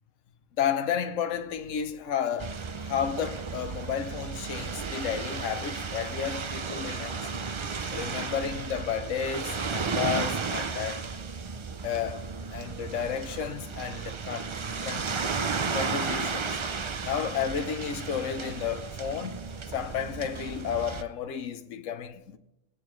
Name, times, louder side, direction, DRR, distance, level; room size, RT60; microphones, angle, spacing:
voice 1, 0.6-7.3 7.9-11.1 11.8-14.5 14.8-15.1 15.7-16.6 17.0-19.5 19.7-22.4, left 8 dB, 80° left, 1.2 m, -32 dB
sound 1, 2.4-21.0, right 5 dB, 45° right, 0.4 m, -34 dB
19.0 x 9.3 x 3.2 m
omnidirectional pair, 1.3 m